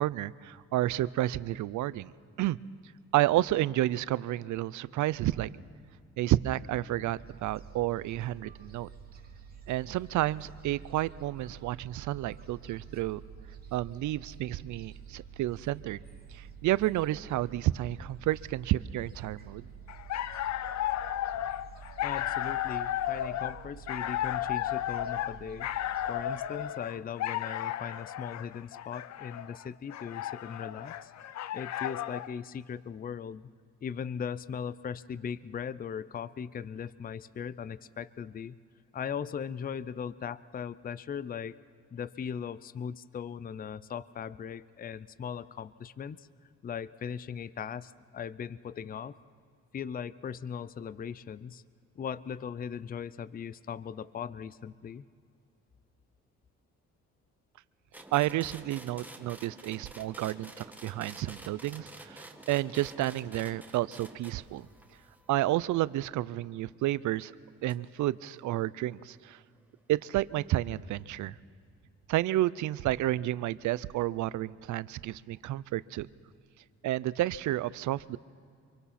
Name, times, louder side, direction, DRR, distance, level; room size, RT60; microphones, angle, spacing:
voice 1, 0.0-2.1 2.4-2.6 3.1-5.5 6.2-8.9 9.7-13.2 13.7-16.0 16.3-19.7 58.1-64.7 65.3-67.3 67.6-69.4 69.9-71.4 72.1-76.1 76.8-78.2, right 15 dB, 75° right, 19 dB, 0.5 m, -30 dB
Gull seagull, 7.2-26.1, right 7 dB, 30° right, 2.8 m, -49 dB
sound 1, 19.9-32.3, left 11 dB, 65° left, 0.7 m, -34 dB
voice 2, 22.0-25.7 26.1-31.1 31.5-33.5 33.8-38.6 38.9-41.6 41.9-46.3 46.6-49.2 49.7-51.6 51.9-55.0, left 7 dB, 30° left, 18 dB, 0.5 m, -39 dB
sound 2, 57.9-66.5 67.7-67.8, right 1 dB, 5° right, 1.5 m, -50 dB
26.5 x 23.5 x 4.2 m, 2.2 s
cardioid pair, 90°, 30 cm